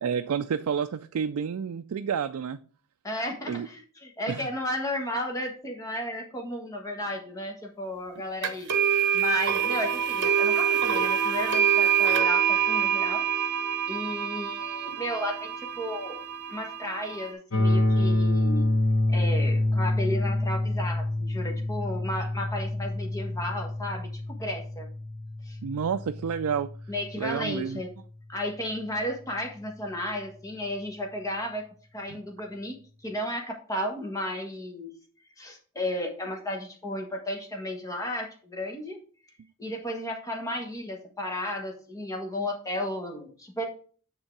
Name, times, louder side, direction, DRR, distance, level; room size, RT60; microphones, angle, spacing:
voice 1, 0.0-2.6 3.5-3.7 4.3-4.5 25.6-26.7 27.2-27.8 32.1-32.2, right 7 dB, 75° right, 0.4 m, -29 dB
voice 2, 3.0-8.7 9.1-13.2 13.9-16.2 16.5-18.7 19.1-24.9 25.4-25.6 26.9-27.9 28.3-31.7 31.9-34.9 35.4-39.0 39.6-43.6, left 1 dB, 15° left, 1.4 m, -33 dB
sound 1, 8.4-17.3, right 8 dB, 55° right, 1.0 m, -26 dB
sound 2, 17.5-27.4, left 1 dB, 70° left, 1.5 m, -27 dB
9.0 x 3.8 x 4.6 m
head